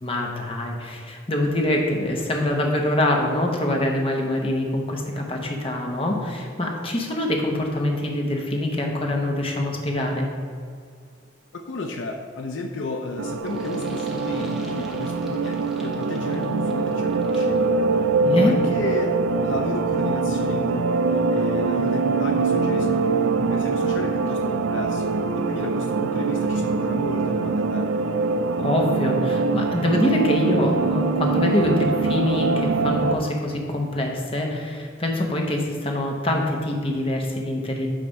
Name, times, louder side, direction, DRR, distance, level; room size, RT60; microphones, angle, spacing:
voice 1, 0.0-10.3 18.2-18.6 28.6-37.9, left 1 dB, 25° left, 1 dB, 0.9 m, -24 dB
voice 2, 11.5-18.1 18.4-27.9, left 2 dB, 70° left, 4 dB, 0.5 m, -33 dB
sound 1, 13.2-33.1, right 4 dB, 80° right, 0.4 m, -23 dB
sound 2, 13.5-17.7, equal, ahead, 0.8 m, -42 dB
8.8 x 3.4 x 5.3 m, 2.2 s
head